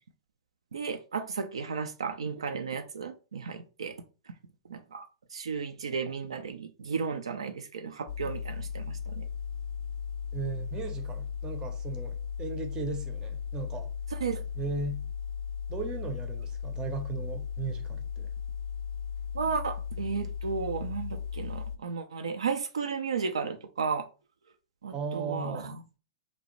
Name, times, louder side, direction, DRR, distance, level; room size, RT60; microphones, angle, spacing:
voice 1, 0.7-4.0 4.7-5.1 5.3-9.2 14.2-14.4 19.3-24.1 24.8-25.8, right 5 dB, 80° right, 0.3 m, -34 dB
sound 1, 8.1-21.8, left 7 dB, 60° left, 0.4 m, -36 dB
voice 2, 10.3-13.9 14.6-15.0 15.7-18.3 24.9-25.8, right 4 dB, 25° right, 0.6 m, -37 dB
2.6 x 2.0 x 3.0 m
hypercardioid pair, 105°, 3 cm